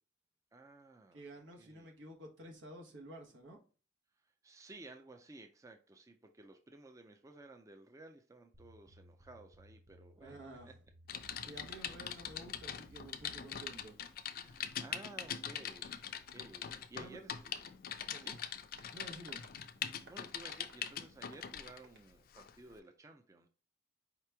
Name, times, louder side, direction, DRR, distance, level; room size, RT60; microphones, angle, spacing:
voice 1, 0.5-1.2 1.6-1.9 4.2-10.7 11.2-11.7 14.4-17.6 18.2-18.4 20.1-23.5, right 2 dB, 15° right, 0.4 m, -55 dB
voice 2, 1.1-3.6 10.2-10.7 11.4-14.0 17.0-17.2 18.1-18.3 18.9-19.5, right 1 dB, 85° right, 1.1 m, -51 dB
sound 1, 8.5-13.8, right 2 dB, 35° right, 1.0 m, -60 dB
Typing, 11.1-21.8 22.3-22.5, left 8 dB, 55° left, 0.4 m, -43 dB
Tap, 17.5-23.0, right 3 dB, 65° right, 0.8 m, -64 dB
4.8 x 3.0 x 3.3 m
head